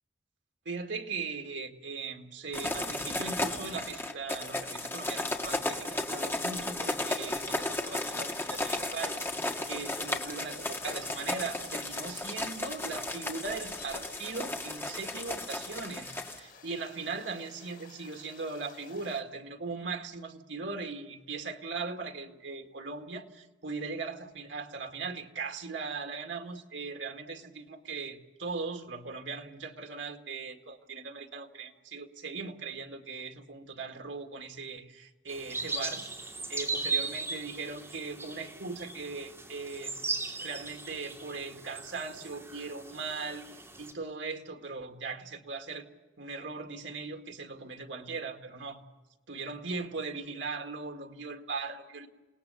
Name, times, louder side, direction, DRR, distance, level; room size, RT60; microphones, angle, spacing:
voice 1, 0.7-9.2 9.7-36.0 36.5-43.4 43.8-45.8 46.2-48.9 49.3-52.1, right 4 dB, 85° right, 4 dB, 1.9 m, -39 dB
sound 1, 2.5-16.4, left 2 dB, 15° left, 1.7 m, -34 dB
sound 2, 7.0-19.2, left 6 dB, 50° left, 3.8 m, -55 dB
sound 3, 35.3-43.9, right 4 dB, 15° right, 3.2 m, -38 dB
28.5 x 18.5 x 6.9 m, 1.2 s
head